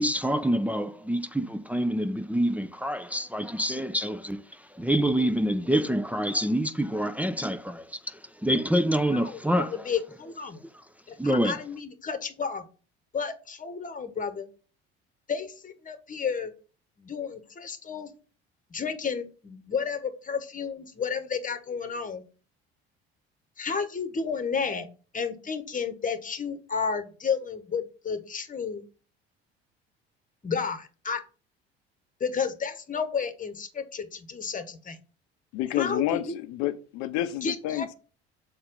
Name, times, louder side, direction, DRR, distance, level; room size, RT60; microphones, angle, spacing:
voice 1, 0.0-4.4 4.7-9.9 11.2-11.6, equal, 5° right, 0.5 m, -26 dB
voice 2, 9.1-10.6 11.1-12.6 13.1-14.5 15.3-16.5 17.0-18.1 18.7-22.2 23.6-24.9 25.1-28.8 30.4-31.2 32.2-35.0 35.7-36.4 37.4-37.9, left 6 dB, 25° left, 1.2 m, -32 dB
voice 3, 35.5-37.9, left 14 dB, 65° left, 0.7 m, -29 dB
6.7 x 4.3 x 3.8 m
hypercardioid pair, 60°, 31 cm